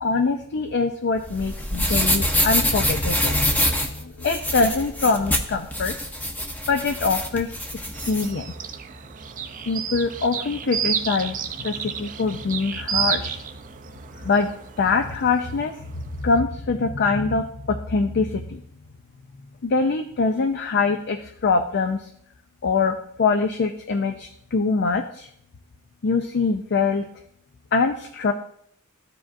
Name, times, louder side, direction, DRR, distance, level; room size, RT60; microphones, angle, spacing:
voice 1, 0.0-5.9 6.7-7.5 8.1-8.5 9.7-11.4 11.6-13.4 14.2-14.5 14.8-15.7 16.2-18.6 19.6-22.0 22.6-25.3 26.0-27.0 27.7-28.3, left 4 dB, 50° left, 5 dB, 0.5 m, -23 dB
sound 1, 1.2-8.3, equal, 10° left, 0.7 m, -25 dB
sound 2, 7.9-16.4, right 7 dB, 35° right, 0.5 m, -31 dB
14.0 x 4.8 x 2.5 m, 0.70 s
head